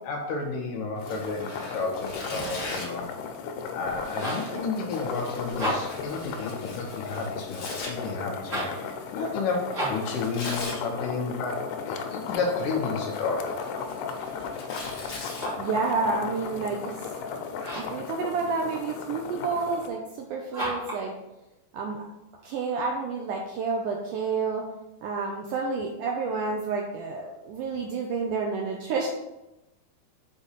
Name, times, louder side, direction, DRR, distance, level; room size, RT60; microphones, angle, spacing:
voice 1, 0.0-3.1 3.7-11.6 11.8-13.5, left 4 dB, 70° left, 1 dB, 2.3 m, -32 dB
sound 1, 1.0-19.9, left 6 dB, 90° left, 2.8 m, -36 dB
Tearing, 1.0-3.0 3.9-7.9 10.0-10.8 12.1-12.6 13.0-15.5, left 2 dB, 50° left, 1.6 m, -40 dB
sound 2, 4.2-4.5 5.4-6.1 8.4-8.8 9.7-10.1 15.2-15.7 17.6-18.0 20.5-21.0, right 1 dB, 30° right, 2.0 m, -32 dB
voice 2, 15.3-17.1 17.8-21.1 21.7-22.1 22.4-24.7 25.0-29.1, right 4 dB, 80° right, 1 dB, 1.9 m, -29 dB
7.2 x 4.0 x 5.6 m, 0.97 s
omnidirectional pair, 4.4 m